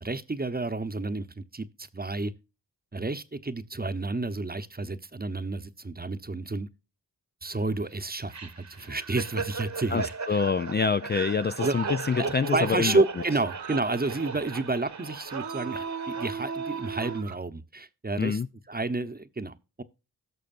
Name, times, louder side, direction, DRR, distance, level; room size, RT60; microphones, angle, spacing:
voice 1, 0.0-2.3 2.9-6.7 7.4-10.4 11.6-11.8 12.2-18.4 18.7-19.8, right 3 dB, 25° right, 0.9 m, -30 dB
sound 1, 8.3-17.2, right 5 dB, 45° right, 1.1 m, -35 dB
voice 2, 9.9-13.0 18.2-18.5, left 5 dB, 25° left, 0.4 m, -26 dB
sound 2, 11.1-17.4, right 12 dB, 80° right, 0.7 m, -49 dB
17.0 x 6.5 x 2.5 m
cardioid pair, 50°, 40 cm